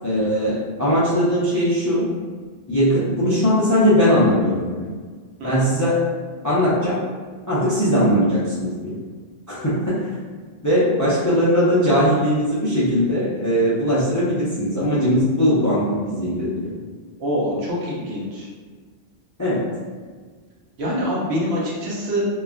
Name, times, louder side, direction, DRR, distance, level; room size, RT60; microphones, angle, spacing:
voice 1, 0.0-2.1 2.7-4.9 5.4-6.1 6.4-7.0 7.5-9.0 9.5-10.1 10.6-16.7 19.4-19.7, equal, 25° left, -9 dB, 0.4 m, -20 dB
voice 2, 17.2-18.5 20.8-22.3, equal, 65° right, -5 dB, 1.0 m, -25 dB
3.0 x 2.4 x 2.3 m, 1.5 s
omnidirectional pair, 1.2 m